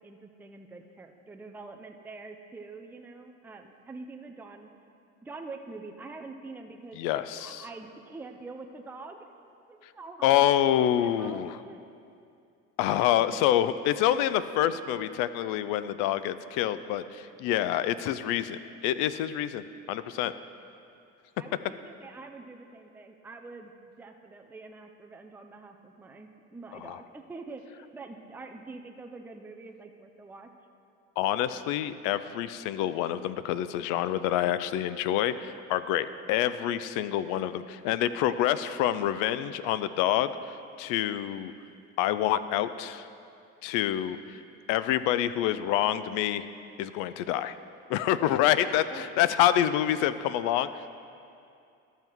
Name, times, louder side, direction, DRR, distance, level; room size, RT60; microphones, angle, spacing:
voice 1, 0.0-4.7 5.2-9.3 9.7-10.4 10.8-11.9 12.9-13.2 21.4-23.7 24.0-30.5 48.5-49.3, right 3 dB, 5° right, 4 dB, 0.4 m, -45 dB
voice 2, 7.0-7.6 9.8-9.9 10.2-11.5 12.8-20.3 26.8-27.0 31.2-41.5 42.0-43.1 43.6-44.4 44.7-46.4 46.8-47.6 47.9-50.7, left 11 dB, 90° left, 14 dB, 0.5 m, -27 dB
12.5 x 5.6 x 4.5 m, 2.5 s
cardioid pair, 120°, 30 cm